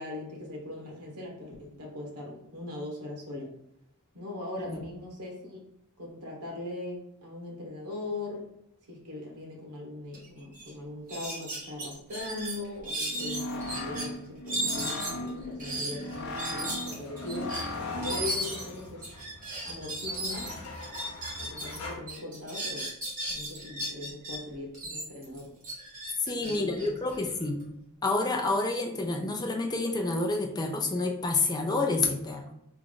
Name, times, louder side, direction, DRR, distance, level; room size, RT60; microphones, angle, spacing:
voice 1, 0.0-3.5 4.1-5.6 6.0-8.5 8.9-17.5 17.9-19.1 19.6-20.5 21.4-22.9 23.3-25.5 26.3-27.3, left 2 dB, 85° right, 0 dB, 1.2 m, -40 dB
sound 1, 10.1-10.2 10.5-10.7 11.1-14.1 14.5-21.8 22.1-24.4 24.7-27.6, right 1 dB, 40° right, 1.3 m, -35 dB
sound 2, 13.1-18.3, left 2 dB, 50° left, 0.7 m, -37 dB
sound 3, 16.5-22.0, left 2 dB, 75° left, 0.9 m, -43 dB
voice 2, 26.3-27.6 28.0-32.5, left 3 dB, 20° left, 2 dB, 0.4 m, -28 dB
3.4 x 2.5 x 3.7 m, 0.77 s
head